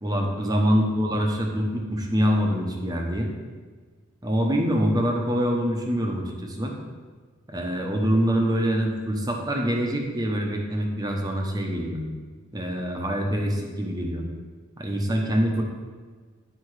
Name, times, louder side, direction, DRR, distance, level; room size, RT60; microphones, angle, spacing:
voice 1, 0.0-3.3 4.2-6.8 7.5-12.0 12.5-14.2 14.8-15.6, equal, 20° right, 1 dB, 0.9 m, -25 dB
8.7 x 5.1 x 4.8 m, 1.5 s
head